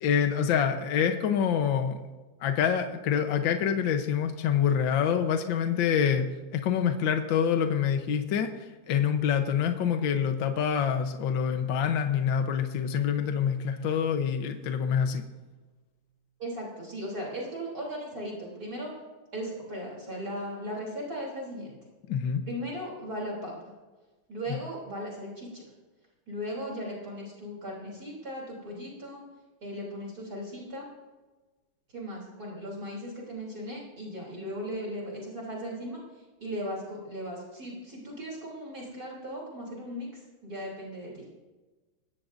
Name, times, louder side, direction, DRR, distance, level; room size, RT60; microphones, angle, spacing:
voice 1, 0.0-2.0 2.4-15.2 22.1-22.4, left 8 dB, 65° left, 6 dB, 1.6 m, -26 dB
voice 2, 16.4-18.9 19.3-21.8 22.4-23.7 24.3-25.6 26.3-29.2 29.6-30.9 31.9-41.2, equal, 45° right, -3 dB, 3.8 m, -37 dB
21.0 x 15.5 x 2.6 m, 1.2 s
omnidirectional pair, 2.3 m